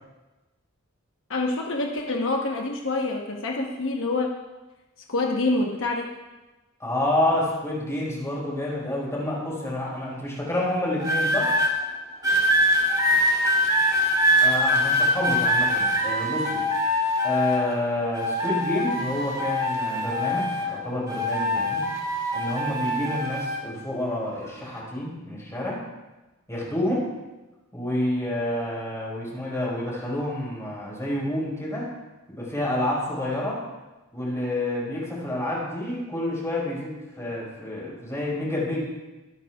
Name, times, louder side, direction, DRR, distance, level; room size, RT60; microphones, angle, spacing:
voice 1, 1.3-4.3 5.1-6.1, left 2 dB, 65° left, 0 dB, 1.0 m, -26 dB
voice 2, 6.8-11.5 14.4-16.6 17.2-21.9 22.3-25.8 26.5-27.1 27.7-31.9 32.3-33.6 34.1-38.9, left 1 dB, 15° left, -5 dB, 4.6 m, -28 dB
sound 1, 11.0-11.7 12.2-17.8 18.1-20.8 21.1-23.6 24.4-24.7, equal, 20° right, 2.7 m, -23 dB
24.0 x 9.4 x 2.4 m, 1.1 s
head